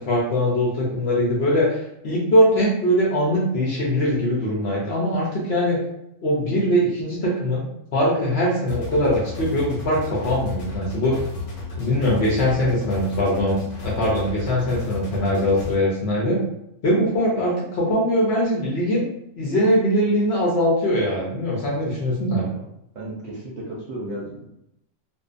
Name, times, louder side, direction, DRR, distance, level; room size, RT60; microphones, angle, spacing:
voice 1, 0.0-1.8 2.0-5.8 6.2-7.7 7.9-11.2 11.7-16.4 16.8-19.1 19.4-22.4, equal, 60° left, -4 dB, 0.8 m, -21 dB
sound 1, 8.7-15.7, left 4 dB, 85° left, 1.2 m, -33 dB
voice 2, 22.9-24.5, right 1 dB, 65° right, -3 dB, 0.7 m, -34 dB
2.6 x 2.2 x 2.4 m, 0.80 s
omnidirectional pair, 1.5 m